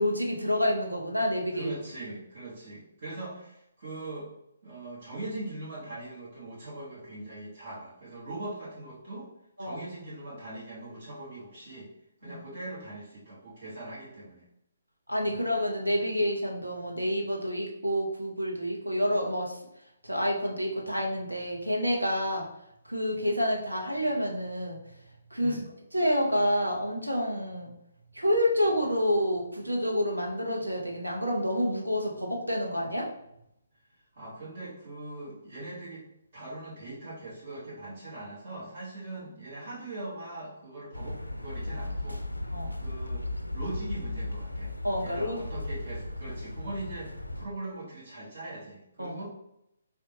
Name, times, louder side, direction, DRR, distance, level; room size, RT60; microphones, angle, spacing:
voice 1, 0.0-1.7 9.6-9.9 12.2-12.4 15.1-19.6 20.0-22.5 22.8-24.8 25.3-25.6 25.9-27.7 28.1-33.1 42.5-42.8 44.8-45.4 49.0-49.2, equal, 85° right, -1 dB, 0.8 m, -28 dB
voice 2, 1.5-4.3 4.6-9.3 9.6-11.9 12.2-14.5 15.2-15.5 25.4-25.7 34.1-36.1 36.3-42.2 42.8-43.3 43.5-44.7 45.0-49.3, right 2 dB, 45° right, -9 dB, 1.3 m, -41 dB
sound 1, 40.9-47.5, left 2 dB, 85° left, 0.3 m, -36 dB
3.6 x 2.3 x 2.9 m, 0.78 s
figure-of-eight pair, 135°, 0 cm